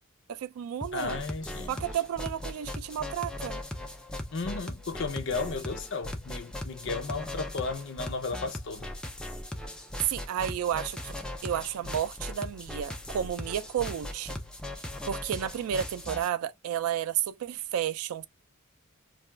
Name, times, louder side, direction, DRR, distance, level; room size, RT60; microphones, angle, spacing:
voice 1, 0.3-1.2 1.7-3.6 10.1-11.2 11.4-14.4 15.1-18.2, right 10 dB, 90° right, 0.3 m, -32 dB
sound 1, 0.8-16.3, left 1 dB, 5° left, 0.4 m, -39 dB
voice 2, 0.9-1.9 4.3-8.9, left 4 dB, 60° left, 0.5 m, -34 dB
2.3 x 2.2 x 3.1 m
head